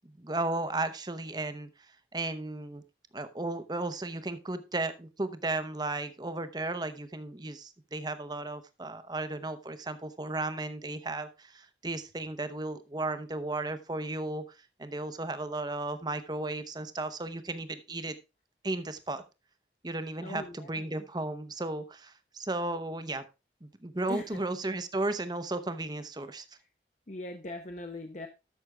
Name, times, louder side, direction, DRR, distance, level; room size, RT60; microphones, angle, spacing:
voice 1, 0.2-1.7 2.1-2.8 3.1-14.4 14.8-18.1 18.6-19.2 19.8-23.2 23.6-26.4, right 2 dB, 25° right, 11 dB, 0.8 m, -34 dB
voice 2, 20.2-20.9 24.1-24.4 27.1-28.3, left 1 dB, 40° left, 5 dB, 0.8 m, -40 dB
13.0 x 6.2 x 3.4 m, 0.27 s
head